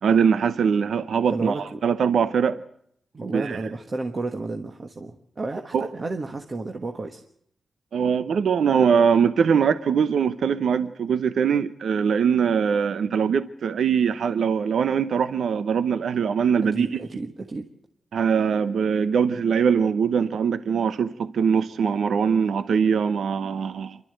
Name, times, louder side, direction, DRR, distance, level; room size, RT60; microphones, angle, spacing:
voice 1, 0.0-2.6 3.3-3.6 5.7-5.9 7.9-16.9 18.1-24.0, right 6 dB, 80° right, 0.9 m, -22 dB
voice 2, 1.3-1.8 3.1-7.2 16.7-17.7, right 3 dB, 30° right, 1.4 m, -31 dB
28.0 x 12.5 x 7.9 m
wide cardioid pair, 165°, 0 cm